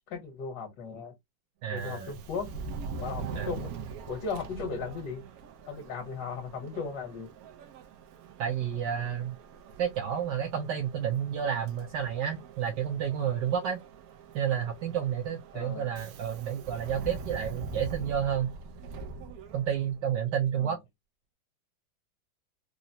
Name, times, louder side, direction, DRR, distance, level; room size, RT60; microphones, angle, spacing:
voice 1, 0.1-1.1 1.7-2.5 2.9-3.7 4.1-5.2 5.7-7.3 15.5-15.9 20.6-20.7, left 5 dB, 65° left, 1.6 m, -36 dB
voice 2, 1.6-2.1 3.3-3.5 8.4-9.4 9.8-13.8 14.3-18.5 19.5-20.8, right 8 dB, 70° right, 1.1 m, -30 dB
Subway metro underground, 1.7-20.1, right 4 dB, 90° right, 0.8 m, -43 dB
3.8 x 2.0 x 2.6 m
omnidirectional pair, 2.2 m